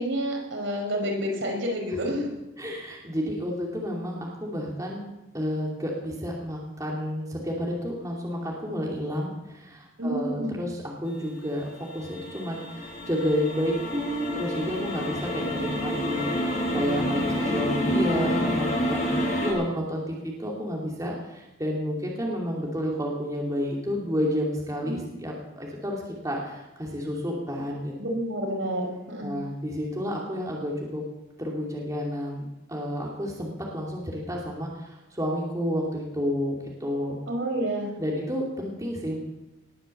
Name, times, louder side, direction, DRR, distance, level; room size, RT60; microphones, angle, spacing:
voice 1, 0.0-2.3 10.0-10.5 15.6-16.0 24.8-25.0 28.0-29.3 37.3-37.9, equal, 70° right, 1 dB, 4.8 m, -29 dB
voice 2, 2.6-5.0 5.3-10.8 11.0-27.9 29.2-31.0 31.4-37.2 38.0-39.2, equal, 15° right, -2 dB, 2.7 m, -30 dB
sound 1, 11.2-19.5, equal, 40° left, 6.0 m, -29 dB
19.5 x 9.1 x 7.8 m, 0.98 s
head